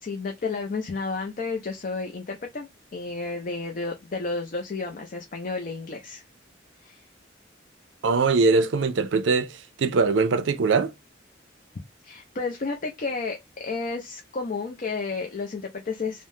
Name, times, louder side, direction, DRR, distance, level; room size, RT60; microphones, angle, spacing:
voice 1, 0.0-6.2 6.8-7.1 12.0-16.3, left 4 dB, 45° left, 0.5 m, -32 dB
voice 2, 8.0-10.9, right 4 dB, 80° right, 0.5 m, -22 dB
3.4 x 2.1 x 2.6 m
head